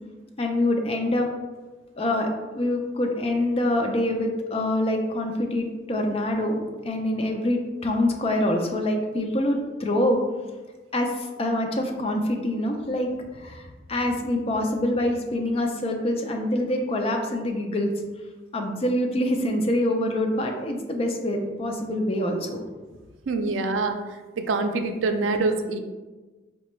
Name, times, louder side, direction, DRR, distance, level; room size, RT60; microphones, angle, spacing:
voice 1, 0.4-1.3 2.0-2.3 2.5-10.2 10.9-13.1 13.3-13.6 13.9-17.9 18.5-22.7, left 1 dB, 30° left, 3 dB, 0.4 m, -25 dB
voice 2, 23.3-24.0 24.4-25.8, right 3 dB, 90° right, 6 dB, 0.4 m, -25 dB
4.8 x 2.2 x 3.0 m, 1.3 s
head